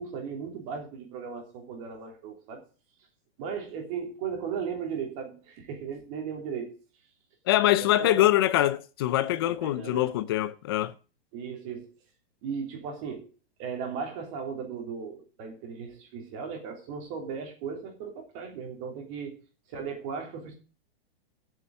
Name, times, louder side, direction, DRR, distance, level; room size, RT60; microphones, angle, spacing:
voice 1, 0.0-2.6 3.4-6.8 7.8-8.3 9.4-10.1 11.3-11.9 12.4-13.3 13.6-19.4 19.7-20.5, right 6 dB, 35° right, 3.1 m, -36 dB
voice 2, 7.5-10.9, left 14 dB, 25° left, 0.4 m, -24 dB
8.5 x 6.9 x 7.7 m
hypercardioid pair, 165°, 30 cm